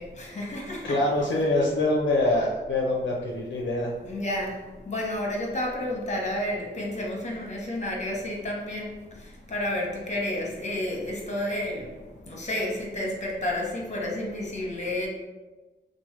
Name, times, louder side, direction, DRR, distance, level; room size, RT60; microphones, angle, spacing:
voice 1, 0.0-1.0 4.0-15.1, left 1 dB, 35° left, -2 dB, 0.9 m, -31 dB
voice 2, 0.8-3.9, left 2 dB, 75° left, -2 dB, 0.5 m, -24 dB
2.9 x 2.1 x 3.1 m, 1.2 s
cardioid pair, 65°, 19 cm